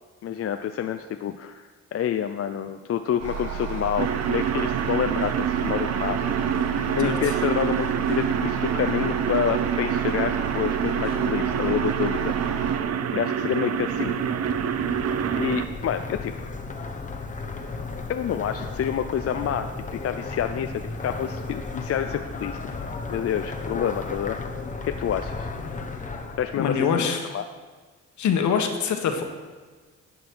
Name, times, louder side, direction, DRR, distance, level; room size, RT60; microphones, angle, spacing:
voice 1, 0.2-6.3 6.9-12.3 13.1-14.2 15.3-16.4 18.1-22.6 23.1-24.4 24.8-25.5 26.4-27.4, left 9 dB, 50° left, 8 dB, 0.5 m, -28 dB
sound 1, 3.2-12.8, right 7 dB, 85° right, 2.5 m, -32 dB
sound 2, 4.0-15.7, right 8 dB, 55° right, 0.6 m, -26 dB
voice 2, 7.0-7.3 26.6-27.3 28.2-29.2, left 6 dB, 70° left, 5 dB, 1.4 m, -24 dB
sound 3, 13.3-26.7, left 3 dB, 25° left, 1.0 m, -35 dB
10.5 x 8.5 x 4.7 m, 1.4 s
cardioid pair, 90°, 30 cm